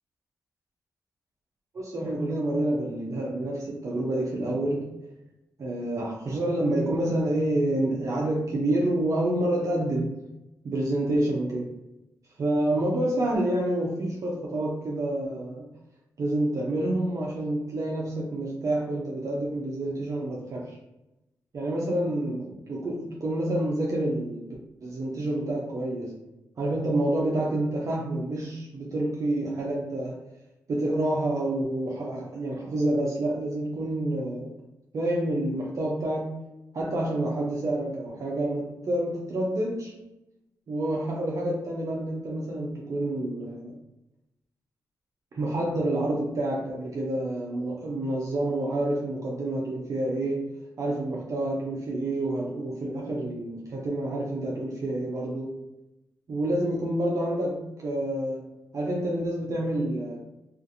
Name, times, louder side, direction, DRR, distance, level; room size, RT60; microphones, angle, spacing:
voice 1, 1.7-4.9 5.6-10.2 10.6-11.8 12.4-15.7 16.2-20.8 21.5-24.6 24.8-26.2 26.6-30.2 30.7-34.5 34.9-36.4 36.7-40.0 40.7-43.8 45.3-55.6 56.3-60.2, right 1 dB, 55° right, -2 dB, 0.5 m, -28 dB
2.5 x 2.4 x 2.6 m, 0.94 s
cardioid pair, 65°, 7 cm